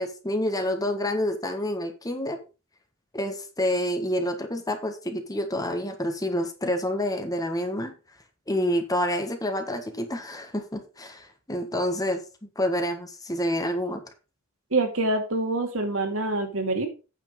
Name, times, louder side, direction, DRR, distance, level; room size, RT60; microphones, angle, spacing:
voice 1, 0.0-2.4 3.1-7.9 8.5-14.0, left 1 dB, 15° left, 6 dB, 1.4 m, -28 dB
voice 2, 14.7-16.9, right 2 dB, 75° right, 4 dB, 2.4 m, -26 dB
9.0 x 5.8 x 5.2 m, 0.32 s
head